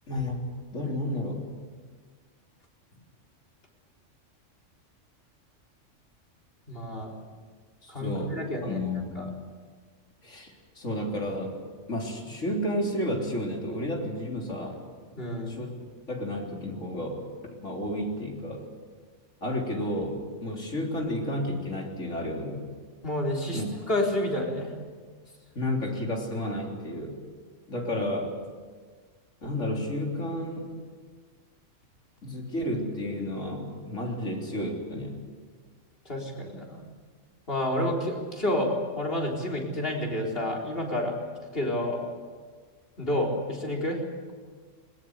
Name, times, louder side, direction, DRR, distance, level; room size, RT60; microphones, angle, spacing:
voice 1, 0.1-0.5 0.7-1.4 7.8-8.4 8.6-9.3 10.2-11.5 11.9-14.8 15.5-15.7 16.1-17.2 17.6-18.6 19.4-22.6 23.5-23.7 25.6-27.2 27.7-28.4 29.4-30.7 32.2-35.2, left 1 dB, 75° left, 0 dB, 4.0 m, -31 dB
voice 2, 6.7-7.1 7.9-8.8 9.1-9.2 15.2-15.5 23.0-23.6 23.9-24.7 36.1-36.8 37.5-41.1 41.5-42.0 43.0-44.0, left 1 dB, 50° left, 2 dB, 4.2 m, -29 dB
20.5 x 20.5 x 8.1 m, 1.5 s
omnidirectional pair, 1.3 m